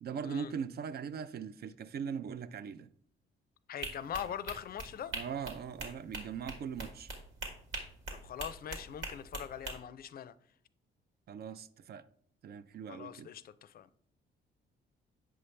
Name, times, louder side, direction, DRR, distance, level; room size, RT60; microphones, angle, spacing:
voice 1, 0.0-2.9 5.1-7.1 11.3-12.0 12.4-13.3, right 7 dB, 55° right, 0.4 m, -40 dB
voice 2, 3.7-5.1 8.1-10.3 12.9-14.0, left 9 dB, 50° left, 0.4 m, -42 dB
sound 1, 3.8-9.7, right 2 dB, 80° right, 1.7 m, -42 dB
7.6 x 5.5 x 3.2 m
cardioid pair, 90°, 20 cm